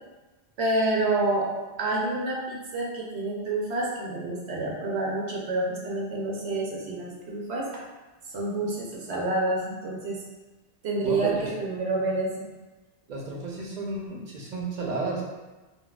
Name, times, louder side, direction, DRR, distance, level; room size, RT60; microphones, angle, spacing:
voice 1, 0.6-1.5 1.8-7.6 8.3-10.2 10.8-12.5, right 2 dB, 80° right, -3 dB, 0.9 m, -28 dB
voice 2, 11.0-11.5 13.1-15.2, right 3 dB, 50° right, -2 dB, 0.6 m, -32 dB
3.8 x 2.1 x 2.3 m, 1.2 s
omnidirectional pair, 1.1 m